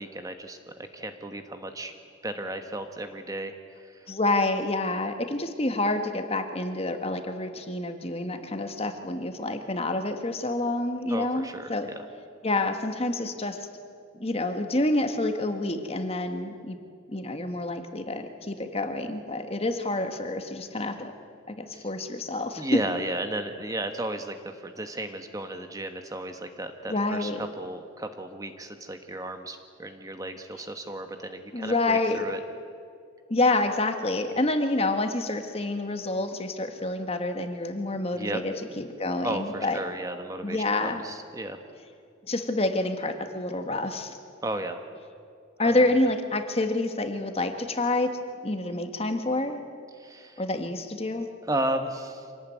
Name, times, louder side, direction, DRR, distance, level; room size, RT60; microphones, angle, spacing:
voice 1, 0.0-1.9 2.2-4.1 11.1-11.8 21.7-21.9 22.6-32.4 38.1-38.4 38.7-38.8 39.2-41.6 44.4-44.8 45.6-46.0 49.9-50.4 51.5-52.3, right 1 dB, 20° right, 7 dB, 1.3 m, -34 dB
voice 2, 4.1-11.9 12.4-13.7 14.2-16.8 17.1-21.1 21.5-22.6 26.9-27.5 31.5-32.2 33.3-39.8 40.4-41.0 42.3-44.2 45.6-49.6 50.4-51.3, left 2 dB, 30° left, 6 dB, 1.6 m, -28 dB
25.5 x 18.0 x 9.3 m, 2.3 s
head